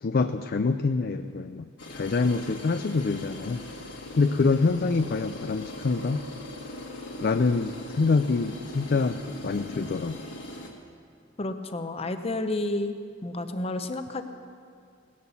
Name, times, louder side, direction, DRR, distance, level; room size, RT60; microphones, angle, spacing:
voice 1, 0.0-3.6 4.2-6.2 7.2-9.2 9.4-10.2, left 4 dB, 55° left, 9 dB, 0.5 m, -25 dB
sound 1, 1.8-10.7, left 1 dB, 75° left, 2.1 m, -40 dB
voice 2, 11.4-13.0 13.2-14.2, left 2 dB, 30° left, 8 dB, 0.8 m, -30 dB
18.0 x 11.0 x 7.1 m, 2.3 s
head